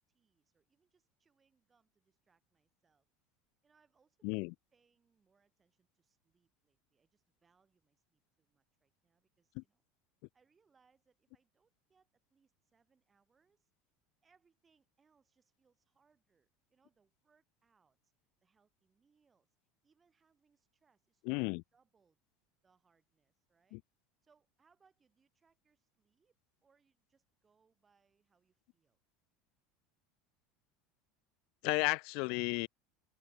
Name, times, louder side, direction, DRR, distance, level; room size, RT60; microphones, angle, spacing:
voice 1, 0.0-3.1 3.6-9.8 10.3-13.7 14.2-18.1 18.4-19.5 19.8-21.4 21.7-22.2 22.6-23.8 24.2-29.0, right 5 dB, 20° right, 7.3 m, -75 dB
voice 2, 4.2-4.5 9.6-9.7 21.3-21.6 23.7-23.8 31.6-32.7, left 33 dB, 65° left, 0.5 m, -33 dB
supercardioid pair, 125°, 0 cm